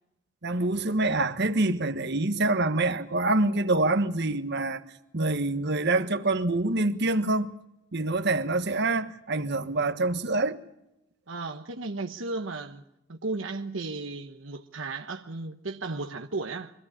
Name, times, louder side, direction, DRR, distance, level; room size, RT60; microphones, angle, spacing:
voice 1, 0.4-4.8 5.1-7.5 7.9-10.6, right 2 dB, 60° right, 1.4 m, -26 dB
voice 2, 11.3-12.8 13.1-16.7, right 3 dB, 80° right, 1.1 m, -34 dB
24.0 x 15.5 x 8.6 m
head